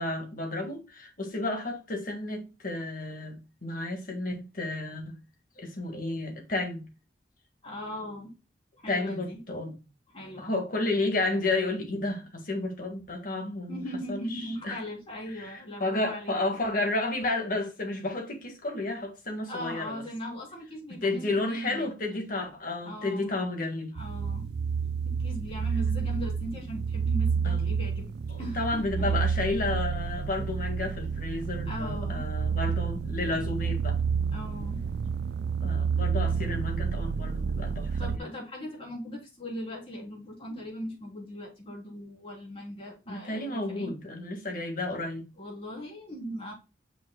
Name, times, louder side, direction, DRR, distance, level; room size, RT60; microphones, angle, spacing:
voice 1, 0.0-5.2 5.6-6.9 8.9-9.7 10.4-14.8 15.3-20.0 21.0-23.9 27.4-27.7 28.3-34.0 35.6-38.3 43.1-45.3, left 2 dB, 50° left, 1.7 m, -32 dB
voice 2, 7.6-8.3 8.8-9.4 10.1-10.5 13.7-16.6 19.5-21.9 22.8-23.3 23.9-24.5 25.0-28.0 28.4-29.1 31.7-32.2 34.3-34.8 38.0-43.9 45.4-46.5, equal, 30° left, 3.2 m, -39 dB
sound 1, 24.0-38.2, right 6 dB, 60° right, 0.3 m, -30 dB
7.7 x 5.7 x 2.2 m
head